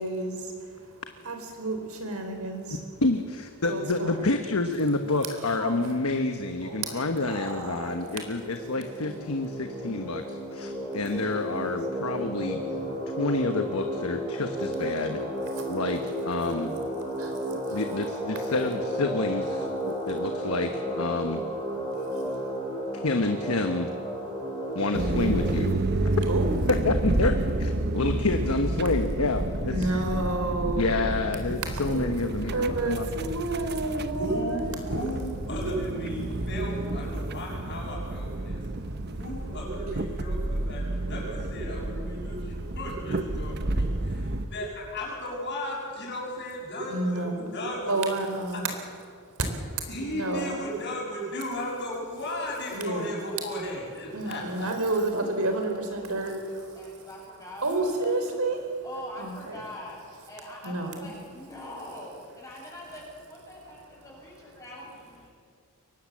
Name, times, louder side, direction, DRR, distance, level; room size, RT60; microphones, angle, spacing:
voice 1, 0.0-2.8 3.6-4.3 5.4-6.0 6.6-8.5 10.6-11.3 13.0-13.2 14.8-14.9 15.5-15.8 17.0-17.8 19.8-20.2 21.7-23.1 24.2-24.8 26.3-26.7 27.8-28.0 29.7-31.1 31.7-34.7 38.4-39.3 42.2-42.7 43.7-44.5 46.8-47.5 47.8-48.6 49.1-49.2 49.5-49.6 50.0-50.5 52.7-53.1 54.1-57.1 57.6-58.6 59.2-59.6 60.6-61.1, right 2 dB, 80° right, 5 dB, 4.0 m, -32 dB
voice 2, 3.0-12.6 13.2-15.2 15.7-16.7 17.7-21.4 23.0-23.9 24.7-25.8 26.8-29.9 30.8-33.1, left 2 dB, 75° left, 6 dB, 1.2 m, -28 dB
sound 1, 7.0-25.5, equal, 15° right, 5.6 m, -33 dB
voice 3, 12.7-13.1 33.2-33.3 34.1-38.6 39.2-47.2 47.5-47.9 48.5-48.6 49.9-54.7, equal, 50° left, -9 dB, 6.7 m, -35 dB
sound 2, 24.9-44.5, right 2 dB, 50° right, 1.0 m, -30 dB
voice 4, 54.9-58.4 58.8-60.0 60.3-65.3, left 1 dB, 15° left, -4 dB, 8.0 m, -44 dB
23.0 x 19.0 x 7.5 m, 2.1 s
head